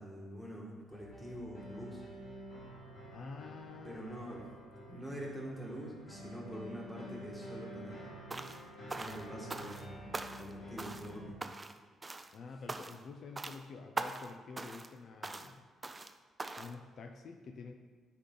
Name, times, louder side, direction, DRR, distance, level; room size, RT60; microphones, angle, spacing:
voice 1, 0.0-2.0 3.8-4.4 4.9-8.1 9.0-11.3, right 1 dB, ahead, -4 dB, 2.0 m, -45 dB
sound 1, 0.9-11.3, equal, 80° left, 1.8 m, -49 dB
voice 2, 3.1-4.0 12.3-15.7 16.6-17.7, left 4 dB, 60° left, 4 dB, 0.5 m, -48 dB
sound 2, 8.3-8.6 8.9-9.9 10.1-10.5 10.8-11.1 11.4-11.8 12.0-12.3 12.7-13.1 13.4-13.6 14.0-14.3 14.6-14.9 15.2-15.5 15.8-16.1 16.4-16.7, right 2 dB, 25° right, 0.4 m, -41 dB
9.7 x 4.3 x 3.9 m, 1.5 s
cardioid pair, 90°, 0 cm